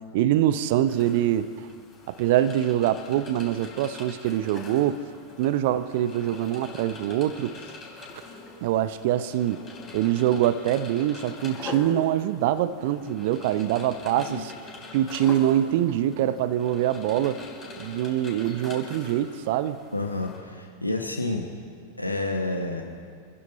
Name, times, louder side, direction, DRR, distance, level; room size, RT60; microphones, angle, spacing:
voice 1, 0.1-1.7 2.1-5.0 5.4-7.5 8.6-9.6 9.9-14.5 14.9-17.4 17.8-19.8, right 12 dB, 50° right, 14 dB, 0.8 m, -24 dB
sound 1, 0.8-20.4, left 3 dB, 25° left, 4.3 m, -43 dB
voice 2, 19.9-21.5 22.0-22.9, left 2 dB, 85° left, 1 dB, 1.4 m, -29 dB
28.0 x 15.5 x 2.8 m, 2.1 s
figure-of-eight pair, 90°, 0 cm